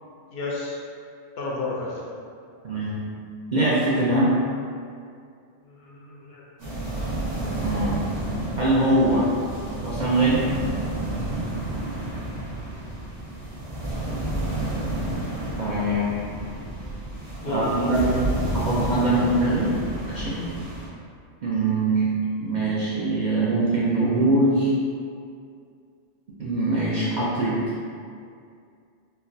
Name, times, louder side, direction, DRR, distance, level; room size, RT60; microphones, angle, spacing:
voice 1, 0.3-0.8 1.4-2.0 5.6-6.4 6.7-6.8 12.4-12.9 17.4-18.2, left 2 dB, 65° left, -4 dB, 0.8 m, -32 dB
voice 2, 2.6-3.0 3.5-4.4 7.6-8.0 8.6-9.3 9.8-10.5 15.6-16.1 17.5-18.1 18.5-19.8 20.1-20.4 21.4-22.1 22.4-24.7 26.4-27.6, right 2 dB, 55° right, -8 dB, 0.5 m, -22 dB
sound 1, 6.6-20.9, right 1 dB, 80° right, 1.5 m, -30 dB
4.4 x 2.1 x 2.6 m, 2.3 s
omnidirectional pair, 1.2 m